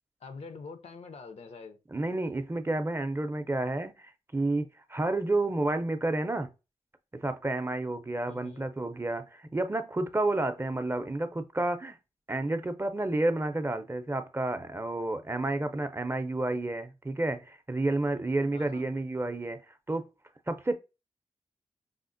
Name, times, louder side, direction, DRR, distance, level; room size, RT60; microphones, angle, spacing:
voice 1, 0.2-1.8 8.3-8.6 18.0-18.9, left 4 dB, 75° left, 0.5 m, -46 dB
voice 2, 1.9-6.5 7.1-12.0 12.3-19.6 19.9-20.1 20.5-20.8, right 2 dB, 20° right, 0.4 m, -30 dB
4.9 x 2.0 x 2.5 m
cardioid pair, 60°, 11 cm